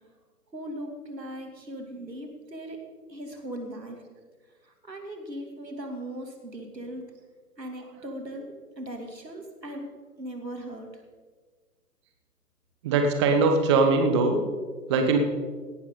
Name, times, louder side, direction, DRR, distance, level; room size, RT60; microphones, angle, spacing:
voice 1, 0.5-2.8 3.1-4.0 4.6-7.1 7.6-9.9 10.2-11.0, right 1 dB, 85° right, 3 dB, 2.7 m, -38 dB
voice 2, 12.8-14.4 14.9-15.2, right 4 dB, 15° right, 5 dB, 0.8 m, -22 dB
17.0 x 12.0 x 3.8 m, 1.5 s
figure-of-eight pair, 130°, 49 cm